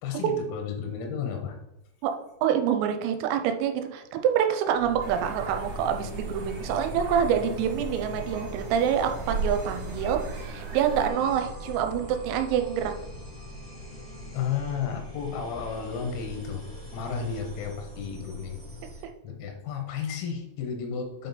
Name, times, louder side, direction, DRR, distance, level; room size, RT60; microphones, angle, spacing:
voice 1, 0.0-1.6 14.3-16.7 16.9-18.6 19.2-21.3, left 6 dB, 85° left, 3 dB, 3.9 m, -33 dB
voice 2, 2.4-12.9, right 8 dB, 90° right, 6 dB, 3.4 m, -26 dB
sound 1, 4.7-19.1, left 1 dB, 30° left, 0.7 m, -41 dB
sound 2, 5.0-11.1, right 3 dB, 70° right, 2.2 m, -36 dB
8.7 x 4.5 x 4.1 m, 0.88 s
omnidirectional pair, 6.0 m